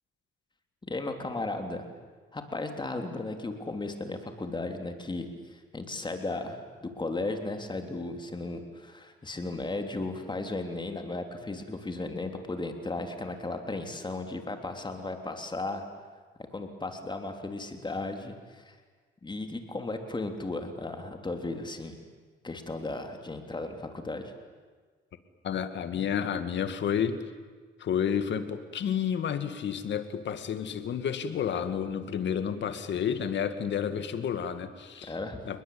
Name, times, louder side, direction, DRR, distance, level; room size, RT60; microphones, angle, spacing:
voice 1, 0.8-1.8 2.3-15.8 16.5-18.7 19.2-22.0 22.4-24.3 35.1-35.4, left 2 dB, 25° left, 5 dB, 3.4 m, -35 dB
voice 2, 25.4-27.2 27.8-35.1 35.5-35.6, left 8 dB, 65° left, 10 dB, 2.2 m, -30 dB
29.0 x 21.0 x 8.8 m, 1.4 s
cardioid pair, 90°, 20 cm